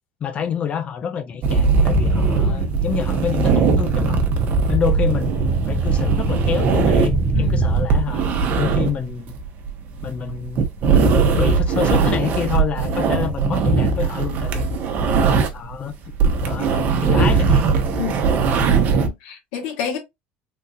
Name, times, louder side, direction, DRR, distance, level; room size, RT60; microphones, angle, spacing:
voice 1, 0.2-4.2 4.7-8.2 8.6-9.3 10.0-10.7 11.4-14.7 15.5-15.9 16.4-17.8, left 7 dB, 35° left, 0.6 m, -27 dB
sound 1, 1.4-15.7 16.0-19.1, right 4 dB, 50° right, 0.9 m, -19 dB
sound 2, 2.0-7.9, right 3 dB, 30° right, 0.6 m, -24 dB
voice 2, 2.3-2.7 7.3-7.6 18.0-18.2 18.9-20.0, left 7 dB, 85° left, 1.5 m, -30 dB
3.9 x 2.7 x 2.4 m
cardioid pair, 135°, 4 cm